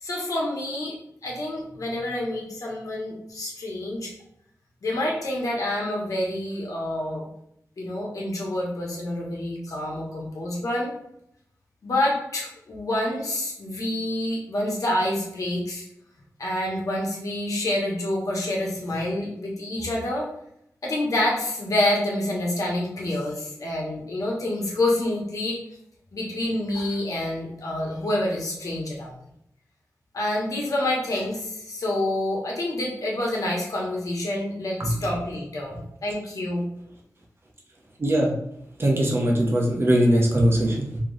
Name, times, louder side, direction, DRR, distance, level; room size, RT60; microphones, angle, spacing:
voice 1, 0.0-0.9 1.2-4.1 4.8-7.3 7.8-10.9 11.8-15.9 16.4-20.3 20.8-25.6 26.1-29.1 30.1-36.6, left 1 dB, 70° left, -2 dB, 1.1 m, -27 dB
voice 2, 38.0-38.3 38.8-41.0, right 1 dB, 40° right, -1 dB, 0.9 m, -21 dB
3.0 x 3.0 x 3.8 m, 0.76 s
wide cardioid pair, 95°, 6 cm